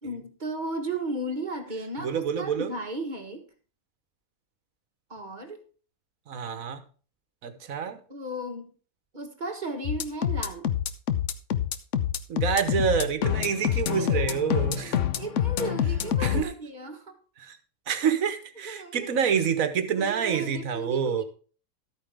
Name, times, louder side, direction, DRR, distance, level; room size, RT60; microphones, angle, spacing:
voice 1, 0.0-3.4 5.1-5.6 8.1-8.7 9.1-10.7 13.9-14.3 14.7-17.2 18.6-19.1 19.9-21.2, right 2 dB, 30° right, 5 dB, 1.4 m, -35 dB
voice 2, 2.0-2.8 6.3-6.8 7.4-8.0 12.3-15.0 16.2-16.5 17.4-17.6 17.9-21.2, right 7 dB, 60° right, 10 dB, 1.5 m, -27 dB
sound 1, 9.8-16.4, left 10 dB, 55° left, 1.0 m, -26 dB
13.0 x 9.0 x 3.5 m, 0.39 s
omnidirectional pair, 1.7 m